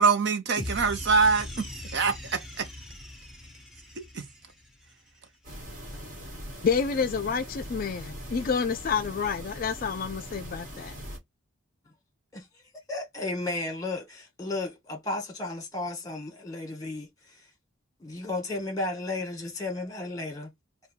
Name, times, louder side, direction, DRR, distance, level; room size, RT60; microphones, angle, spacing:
voice 1, 0.0-2.7 4.1-4.2, right 4 dB, 55° right, 0.6 m, -24 dB
sound 1, 0.6-4.9, left 1 dB, 5° right, 0.9 m, -40 dB
sound 2, 5.4-11.2, equal, 40° right, 1.6 m, -41 dB
voice 2, 6.6-10.9, left 6 dB, 45° left, 0.3 m, -29 dB
voice 3, 12.9-17.4 18.0-20.5, left 2 dB, 15° left, 1.4 m, -34 dB
3.6 x 2.3 x 4.3 m
head